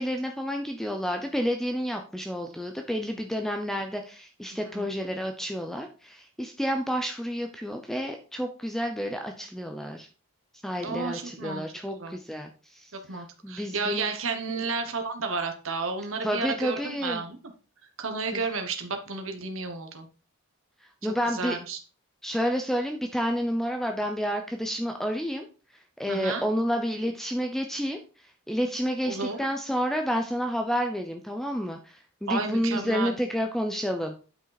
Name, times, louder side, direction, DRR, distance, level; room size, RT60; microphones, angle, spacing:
voice 1, 0.0-10.1 10.6-12.5 13.4-14.1 16.2-17.2 21.0-21.6 22.2-25.4 26.0-28.0 28.5-31.8 32.2-34.2, equal, ahead, 4 dB, 0.6 m, -29 dB
voice 2, 4.5-4.9 10.8-11.6 12.0-12.1 13.1-17.4 18.0-20.1 21.0-21.8 26.1-26.4 29.0-29.5 32.3-33.1, right 4 dB, 65° right, 6 dB, 1.2 m, -32 dB
9.0 x 5.2 x 4.1 m, 0.36 s
head